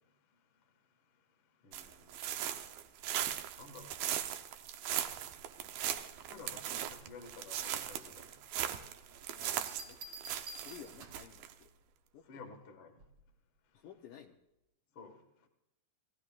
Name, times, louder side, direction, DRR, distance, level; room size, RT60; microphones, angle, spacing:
voice 1, 0.0-9.4 10.5-10.6 12.2-13.1 13.6-13.8 14.9-15.5, left 4 dB, 60° left, 1.5 m, -56 dB
sound 1, 1.7-11.5, right 10 dB, 75° right, 2.2 m, -39 dB
voice 2, 9.3-10.0 10.5-11.7 12.1-12.5 13.7-14.3, left 8 dB, 85° left, 1.8 m, -54 dB
sound 2, 9.7-11.4 13.0-13.3, right 2 dB, 55° right, 2.1 m, -50 dB
29.0 x 17.5 x 2.5 m
omnidirectional pair, 5.1 m